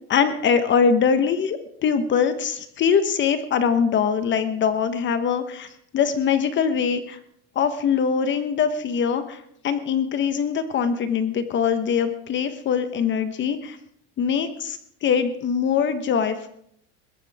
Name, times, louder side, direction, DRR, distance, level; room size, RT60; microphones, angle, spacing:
voice 1, 0.1-5.7 5.9-7.2 7.5-9.4 9.6-13.8 14.2-16.5, left 6 dB, 35° left, 9 dB, 1.2 m, -22 dB
21.0 x 16.0 x 3.6 m, 0.68 s
supercardioid pair, 135°, 33 cm